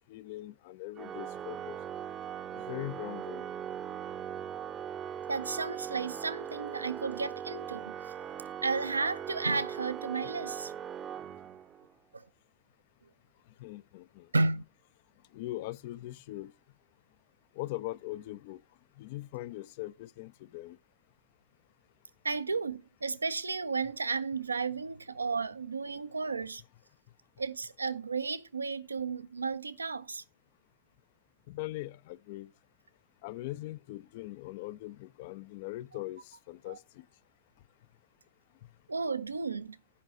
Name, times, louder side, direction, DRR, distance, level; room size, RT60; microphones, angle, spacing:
voice 1, 0.0-1.8 2.5-3.5 13.6-14.3 15.3-16.5 17.6-18.6 19.0-20.8 31.5-32.5 33.2-37.1, left 17 dB, 50° left, 0.4 m, -41 dB
Organ, 1.0-11.9, right 8 dB, 25° right, 0.7 m, -40 dB
voice 2, 5.3-7.9 8.6-10.7 14.3-14.6 22.2-26.6 27.4-30.2 36.7-36.8 38.9-39.8, right 4 dB, 75° right, 0.6 m, -33 dB
8.5 x 5.5 x 6.4 m
figure-of-eight pair, 90°, 0 cm